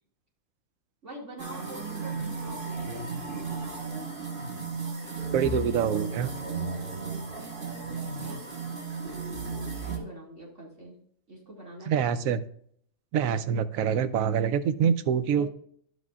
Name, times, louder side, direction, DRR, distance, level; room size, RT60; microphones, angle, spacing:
voice 1, 1.0-3.1 8.2-8.5 9.8-11.0 11.3-12.3 15.3-15.5, right 1 dB, 55° right, -3 dB, 2.6 m, -45 dB
sound 1, 1.4-10.0, right 4 dB, 35° right, 1.6 m, -34 dB
voice 2, 5.3-6.3 11.9-12.4 13.1-15.5, right 8 dB, 70° right, 12 dB, 1.0 m, -25 dB
11.0 x 8.1 x 2.4 m, 0.63 s
omnidirectional pair, 1.5 m